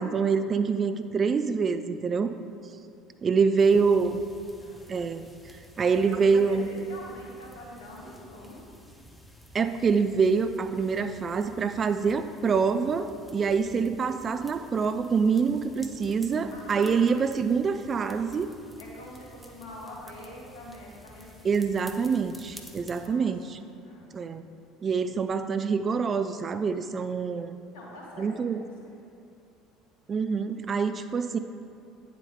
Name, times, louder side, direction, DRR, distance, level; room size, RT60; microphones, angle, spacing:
voice 1, 0.0-2.3 3.2-4.2 4.9-6.7 9.5-18.5 21.4-23.6 24.1-24.4 24.8-27.6 28.2-28.6 30.1-31.4, right 5 dB, 30° right, 10 dB, 0.4 m, -26 dB
voice 2, 3.6-4.1 4.6-5.0 5.8-8.6 16.5-17.5 18.8-21.7 22.9-23.3 23.6-24.4 27.7-28.9, left 1 dB, 65° left, -4 dB, 1.9 m, -46 dB
sound 1, 3.6-23.1, equal, 5° left, 1.0 m, -51 dB
9.8 x 7.4 x 3.6 m, 2.4 s
figure-of-eight pair, 60°, 0 cm